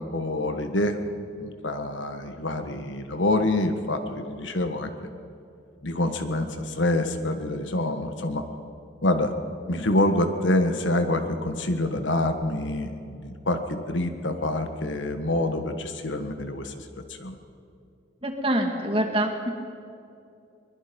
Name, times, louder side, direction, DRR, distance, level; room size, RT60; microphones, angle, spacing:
voice 1, 0.0-4.9 5.8-8.5 9.0-9.3 9.7-17.4, left 1 dB, 75° left, 7 dB, 1.6 m, -26 dB
voice 2, 18.2-19.5, right 1 dB, 30° right, 3 dB, 2.0 m, -25 dB
22.5 x 21.5 x 5.3 m, 2.5 s
head